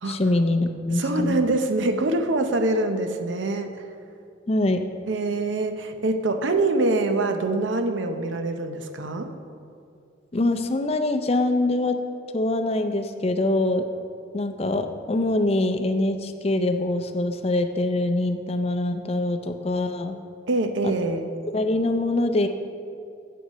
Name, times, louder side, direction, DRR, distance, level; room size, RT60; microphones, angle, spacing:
voice 1, 0.1-1.4 4.5-4.8 10.3-12.0 12.3-13.9 14.3-20.2 20.8-20.9 21.5-22.5, left 2 dB, 30° left, 7 dB, 0.5 m, -24 dB
voice 2, 0.9-3.8 5.1-9.3 20.5-21.3, right 2 dB, 80° right, 7 dB, 0.7 m, -24 dB
7.8 x 7.8 x 5.5 m, 2.4 s
head